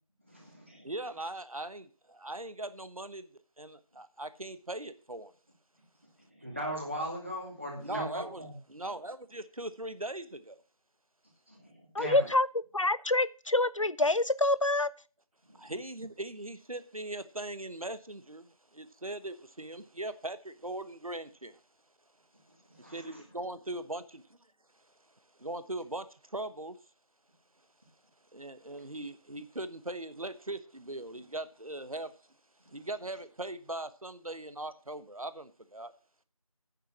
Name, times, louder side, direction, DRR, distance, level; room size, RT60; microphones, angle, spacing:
voice 1, 0.3-0.9 6.3-8.5 11.5-12.3 15.4-15.7 22.7-23.2 32.7-32.8, equal, 20° right, 2.4 m, -39 dB
voice 2, 0.8-3.3 3.6-5.3 7.8-8.4 8.7-10.6 15.5-21.6 22.8-24.4 25.4-26.8 28.3-32.1 32.7-35.9, right 2 dB, 70° right, 1.2 m, -40 dB
voice 3, 12.0-12.5 12.7-14.9, left 2 dB, 60° left, 0.6 m, -26 dB
9.3 x 7.0 x 7.3 m
figure-of-eight pair, 175°, 19 cm